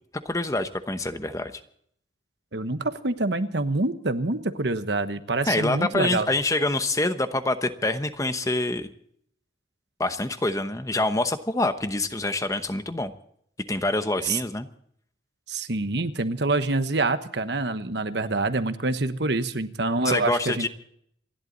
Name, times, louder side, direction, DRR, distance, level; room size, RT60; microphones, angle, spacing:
voice 1, 0.2-1.6 5.5-8.9 10.0-13.1 13.7-14.7 20.0-20.7, left 2 dB, 15° left, 9 dB, 0.9 m, -26 dB
voice 2, 2.5-6.3 14.2-14.4 15.5-20.7, right 2 dB, 60° right, 10 dB, 1.2 m, -26 dB
28.0 x 11.5 x 4.0 m, 0.68 s
head